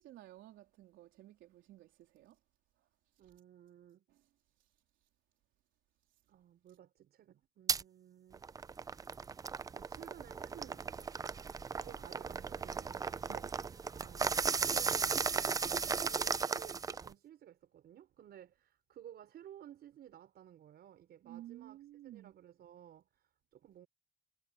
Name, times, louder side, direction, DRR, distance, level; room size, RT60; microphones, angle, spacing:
voice 1, 0.0-2.4 3.2-3.3 4.1-4.3 4.6-4.7 13.3-13.5 21.2-22.3, right 14 dB, 75° right, 3.6 m, -53 dB
voice 2, 3.2-4.0 6.3-8.7 9.4-10.9 11.8-13.2 13.9-15.5 16.1-23.9, right 11 dB, 55° right, 5.0 m, -56 dB
sound 1, 7.7-7.8 8.3-17.1, right 5 dB, 20° right, 0.4 m, -36 dB
cardioid pair, 135°, 20 cm